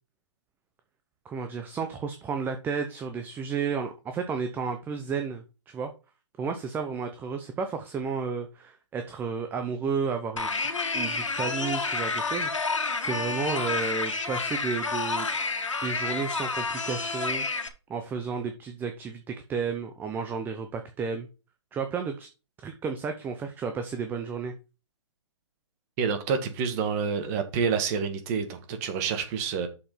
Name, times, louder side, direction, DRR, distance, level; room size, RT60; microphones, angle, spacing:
voice 1, 1.2-5.9 6.4-15.3 15.8-21.3 21.7-22.3 22.6-24.5, right 5 dB, 10° right, 0.8 m, -32 dB
sound 1, 10.4-17.7, left 4 dB, 85° left, 2.0 m, -29 dB
voice 2, 26.0-29.7, right 6 dB, 30° right, 1.7 m, -28 dB
6.8 x 5.3 x 5.7 m
hypercardioid pair, 140°, 16 cm